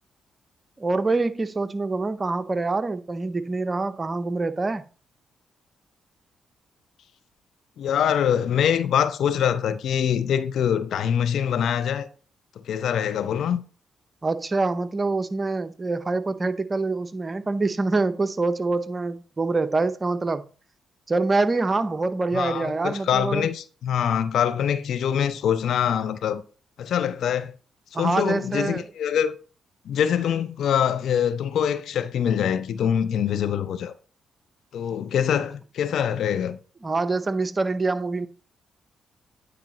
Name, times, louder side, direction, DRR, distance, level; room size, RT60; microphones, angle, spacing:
voice 1, 0.8-4.8 14.2-20.4 21.1-23.5 27.9-28.8 36.8-38.3, right 3 dB, 35° right, 0.7 m, -25 dB
voice 2, 7.8-12.1 12.6-13.6 22.3-26.4 26.8-27.5 27.9-29.3 29.8-33.9 34.7-36.6, left 8 dB, 70° left, 0.5 m, -24 dB
9.4 x 4.9 x 2.9 m
hypercardioid pair, 45°, 0 cm